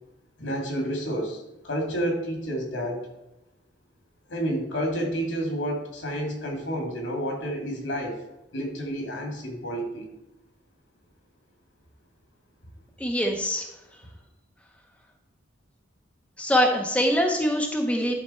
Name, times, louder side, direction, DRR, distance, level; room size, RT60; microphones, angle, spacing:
voice 1, 0.4-3.0 4.3-8.2 8.5-10.1, equal, 75° left, 1 dB, 2.5 m, -30 dB
voice 2, 13.0-13.7 16.4-18.1, equal, 5° left, 1 dB, 0.8 m, -23 dB
11.5 x 4.3 x 4.4 m, 0.94 s
head